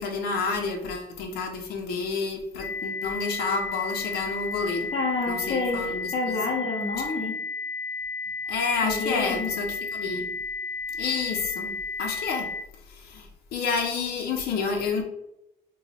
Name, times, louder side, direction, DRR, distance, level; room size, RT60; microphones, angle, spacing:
voice 1, 0.0-4.9 5.3-6.4 8.5-10.3 11.0-12.5 12.8-15.0, left 4 dB, 70° left, 1 dB, 0.8 m, -29 dB
sound 1, 2.6-12.6, left 4 dB, 5° right, 0.8 m, -33 dB
voice 2, 4.9-5.8 6.1-7.4 8.8-9.5, left 3 dB, 35° left, -3 dB, 0.8 m, -28 dB
2.9 x 2.3 x 4.2 m, 0.85 s
cardioid pair, 110°, 17 cm